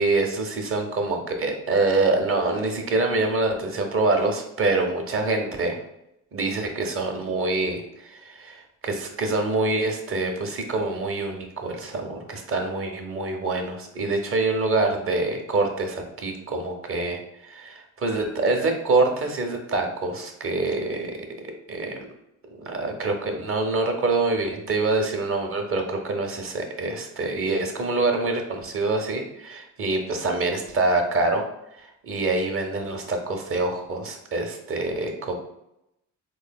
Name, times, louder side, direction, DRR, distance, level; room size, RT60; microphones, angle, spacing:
voice 1, 0.0-5.8 6.3-21.2 21.7-22.1 22.6-31.4 31.8-35.3, right 3 dB, 45° right, 3 dB, 0.7 m, -25 dB
3.6 x 3.1 x 2.2 m, 0.82 s
cardioid pair, 90°, 30 cm